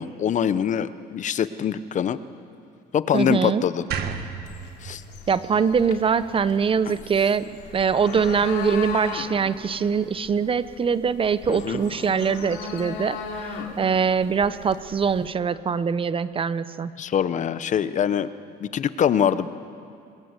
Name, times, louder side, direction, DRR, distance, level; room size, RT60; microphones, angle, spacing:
voice 1, 0.0-2.2 2.9-3.8 4.8-5.0 6.9-7.0 11.5-11.8 17.0-18.3 18.6-19.5, left 8 dB, 45° left, 14 dB, 0.8 m, -24 dB
voice 2, 3.1-3.6 5.3-13.2 13.4-16.9, right 6 dB, 30° right, 14 dB, 0.7 m, -23 dB
sound 1, 3.9-7.1, right 7 dB, 70° right, 1.8 m, -34 dB
sound 2, 4.5-15.3, left 5 dB, 80° left, 2.8 m, -37 dB
22.0 x 21.5 x 8.1 m, 2.4 s
cardioid pair, 110°, 17 cm